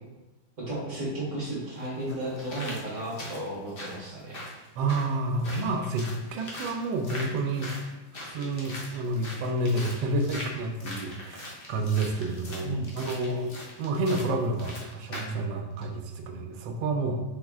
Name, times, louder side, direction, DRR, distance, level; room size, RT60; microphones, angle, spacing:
voice 1, 0.6-4.4 12.6-13.1, right 1 dB, 45° right, -6 dB, 1.5 m, -34 dB
sound 1, 1.8-15.4 15.8-15.9, left 1 dB, 45° left, 0.7 m, -42 dB
voice 2, 4.8-7.7 8.3-13.5 13.8-17.2, right 2 dB, 90° right, 3 dB, 1.4 m, -29 dB
4.2 x 3.1 x 3.6 m, 1.1 s
omnidirectional pair, 2.0 m